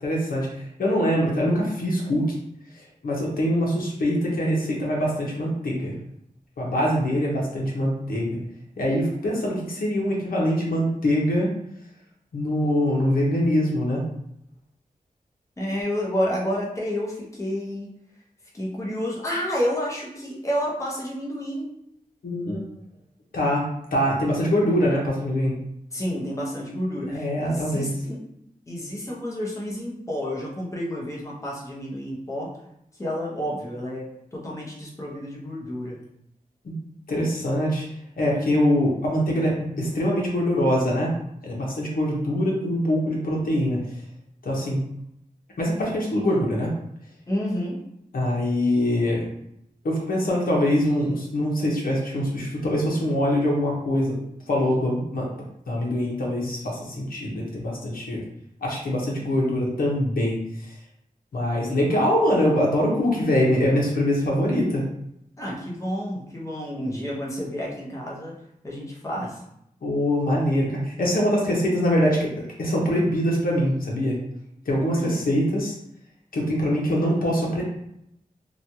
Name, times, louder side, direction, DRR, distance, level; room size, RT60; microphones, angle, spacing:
voice 1, 0.0-2.2 3.0-5.9 6.6-8.4 8.8-11.5 12.3-14.0 22.2-22.6 23.3-23.6 23.9-25.5 27.1-27.9 36.6-36.7 37.1-37.9 38.2-41.1 41.4-43.8 44.4-44.8 45.6-46.7 48.1-49.3 49.8-54.1 54.5-55.3 55.7-58.2 58.6-60.7 61.3-64.8 69.8-72.3 72.6-74.2 74.7-75.7 76.3-77.6, equal, 80° left, -3 dB, 0.8 m, -23 dB
voice 2, 15.6-17.9 18.5-21.7 25.9-28.3 28.7-32.5 33.0-36.0 47.3-47.8 65.4-68.3 68.6-69.4 74.9-75.2, equal, 20° left, -4 dB, 0.7 m, -30 dB
3.0 x 2.3 x 2.7 m, 0.79 s
wide cardioid pair, 125°, 15 cm